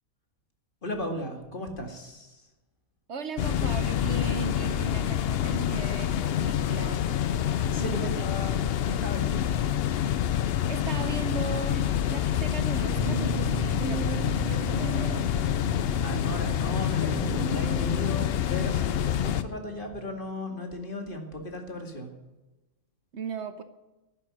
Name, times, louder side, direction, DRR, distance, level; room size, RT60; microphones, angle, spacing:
voice 1, 0.8-2.5 7.5-9.7 16.0-22.1, left 1 dB, 40° left, 4 dB, 2.3 m, -36 dB
voice 2, 3.1-7.1 7.8-8.2 10.7-15.3 23.1-23.6, right 4 dB, 60° right, 11 dB, 1.0 m, -37 dB
sound 1, 3.4-19.4, left 10 dB, 60° left, 0.7 m, -27 dB
sound 2, 12.9-20.0, right 5 dB, ahead, 3.0 m, -37 dB
11.0 x 10.0 x 9.8 m, 1.1 s
omnidirectional pair, 1.4 m